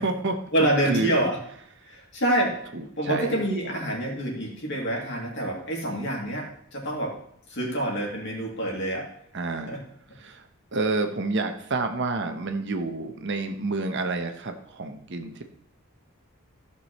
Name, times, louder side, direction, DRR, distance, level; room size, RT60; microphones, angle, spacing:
voice 1, 0.0-0.3 0.8-1.3 2.7-3.4 9.3-9.8 10.2-10.4 10.7-15.4, right 3 dB, 55° right, 6 dB, 1.0 m, -29 dB
voice 2, 0.5-1.4 1.8-7.1 7.5-9.1 9.7-9.8, right 1 dB, 55° left, -2 dB, 2.7 m, -27 dB
14.5 x 6.2 x 3.1 m, 0.68 s
head